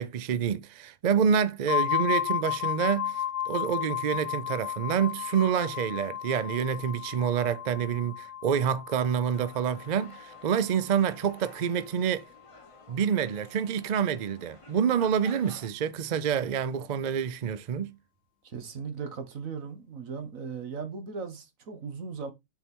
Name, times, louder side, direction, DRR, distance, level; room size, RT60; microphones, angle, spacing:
voice 1, 0.0-12.2 12.9-17.9, right 7 dB, 50° right, 0.5 m, -27 dB
sound 1, 1.7-11.3, left 10 dB, 70° left, 1.1 m, -33 dB
sound 2, 9.3-15.7, left 2 dB, 25° left, 1.3 m, -53 dB
voice 2, 18.4-22.3, right 5 dB, 80° right, 1.8 m, -37 dB
6.8 x 4.5 x 4.4 m
omnidirectional pair, 1.4 m